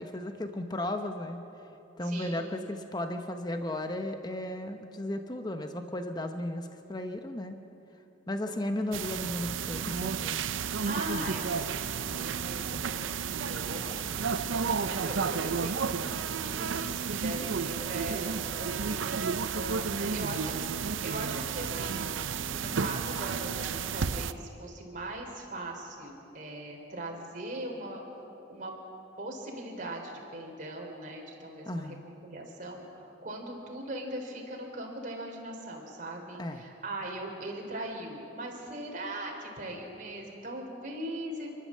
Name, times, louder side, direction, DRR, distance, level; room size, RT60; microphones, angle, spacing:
voice 1, 0.0-1.4 2.0-7.6 8.3-10.4 12.7-12.8 31.7-32.0 36.4-36.6, left 1 dB, 20° left, 6 dB, 0.9 m, -35 dB
voice 2, 2.0-2.5 8.5-8.6 10.8-22.0 22.5-28.0 28.5-28.7 29.2-41.5, right 1 dB, 45° right, 1 dB, 3.7 m, -40 dB
sound 1, 8.9-24.3, right 6 dB, 90° right, 0.6 m, -32 dB
29.5 x 12.0 x 7.6 m, 3.0 s
head